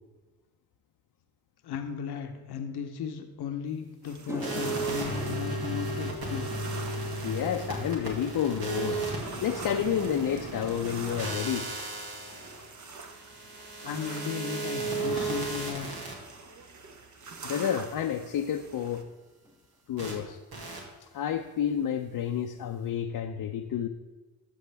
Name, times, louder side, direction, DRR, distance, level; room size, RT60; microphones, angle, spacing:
voice 1, 1.6-6.5 13.8-15.9, left 7 dB, 80° left, 6 dB, 1.0 m, -36 dB
sound 1, 3.6-3.7 4.1-12.6 12.9-13.3 16.9-17.0 18.7-18.8 19.0-19.2 19.4-20.0, equal, 5° right, 0.9 m, -46 dB
sound 2, 4.0-19.0, right 4 dB, 50° right, 1.1 m, -46 dB
sound 3, 4.4-16.1 20.0-20.1 20.5-20.8, right 2 dB, 75° right, 2.3 m, -35 dB
voice 2, 7.2-9.0 9.4-11.7 17.4-19.0 19.9-20.4 21.0-23.9, left 9 dB, 65° left, 4 dB, 0.7 m, -30 dB
13.0 x 7.1 x 3.4 m, 1.2 s
cardioid pair, 70°, 38 cm